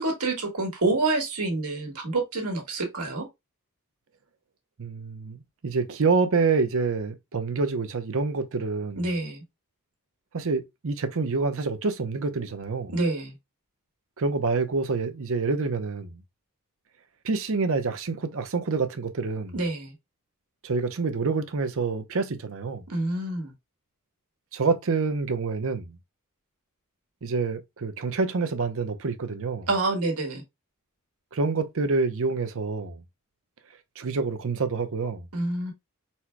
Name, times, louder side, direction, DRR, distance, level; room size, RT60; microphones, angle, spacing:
voice 1, 0.0-3.3 9.0-9.4 12.9-13.3 19.5-19.9 22.9-23.5 29.7-30.4 35.3-35.7, right 2 dB, 80° right, 1.7 m, -27 dB
voice 2, 4.8-9.0 10.3-12.9 14.2-16.2 17.2-19.5 20.6-22.8 24.5-26.0 27.2-29.7 31.3-33.0 34.0-35.3, right 4 dB, 65° right, 0.7 m, -27 dB
4.3 x 2.2 x 4.4 m
head